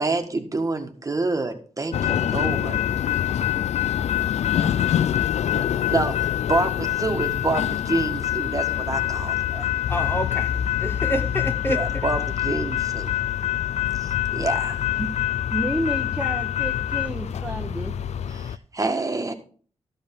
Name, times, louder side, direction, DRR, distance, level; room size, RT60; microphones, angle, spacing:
voice 1, 0.0-2.8 4.3-4.7 5.5-9.7 11.7-13.1 14.0-14.8 18.3-19.3, right 3 dB, 30° right, 5 dB, 1.5 m, -28 dB
sound 1, 1.9-18.6, left 11 dB, 85° left, 0.4 m, -25 dB
voice 2, 9.9-11.8, equal, 20° left, 7 dB, 1.1 m, -28 dB
voice 3, 15.5-18.0, right 1 dB, 10° right, 1 dB, 1.2 m, -30 dB
13.0 x 5.3 x 5.3 m, 0.42 s
wide cardioid pair, 95°, 11 cm